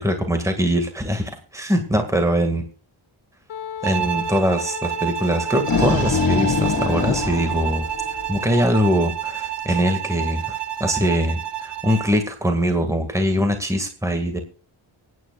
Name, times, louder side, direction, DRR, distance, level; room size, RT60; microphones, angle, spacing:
voice 1, 0.0-2.6 3.8-7.9 8.3-14.4, equal, 5° right, 5 dB, 2.0 m, -22 dB
Wind instrument woodwind instrument, 3.5-9.1, left 9 dB, 75° left, 1.1 m, -37 dB
Bowed string instrument, 3.8-12.2, right 11 dB, 55° right, 1.2 m, -29 dB
sound 1, 5.5-8.6, left 5 dB, 45° left, 2.0 m, -23 dB
24.0 x 9.4 x 2.4 m, 0.43 s
wide cardioid pair, 100°, 49 cm